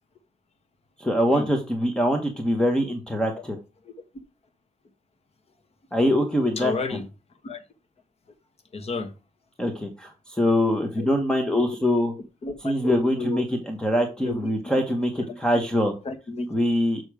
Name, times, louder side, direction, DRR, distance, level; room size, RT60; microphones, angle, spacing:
voice 1, 1.0-3.6 5.9-6.7 9.6-12.1 12.6-15.9 16.5-17.0, equal, 5° left, 1.2 m, -23 dB
voice 2, 6.6-7.0 7.4-7.6 8.7-9.1 11.0-11.1 12.4-13.5 14.2-14.3 14.6-14.8 15.2-15.3 15.5-15.7 16.0-16.5, left 3 dB, 45° left, 1.4 m, -31 dB
6.8 x 6.3 x 4.9 m
wide cardioid pair, 155°, 15 cm